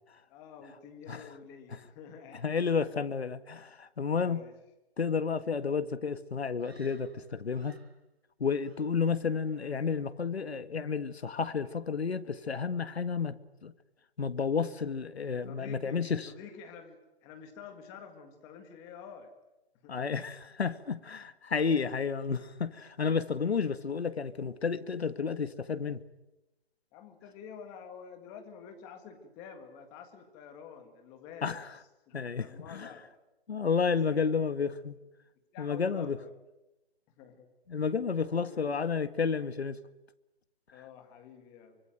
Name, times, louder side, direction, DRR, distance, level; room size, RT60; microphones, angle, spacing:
voice 1, 0.3-2.4 4.2-4.5 15.4-19.3 19.8-20.0 26.9-31.5 32.1-33.0 34.1-34.3 35.5-36.3 37.2-37.5 38.2-38.7 40.7-41.8, left 6 dB, 10° left, 1.7 m, -49 dB
voice 2, 2.3-4.4 5.0-7.8 8.4-13.7 14.2-16.3 19.9-26.0 31.4-31.8 32.1-32.9 33.5-35.0 35.6-36.2 37.7-39.8, left 5 dB, 90° left, 1.9 m, -31 dB
Screaming, 6.6-8.0 8.5-9.2 9.5-9.9, right 4 dB, 80° right, 5.7 m, -61 dB
25.5 x 25.0 x 9.0 m
hypercardioid pair, 175°, 31 cm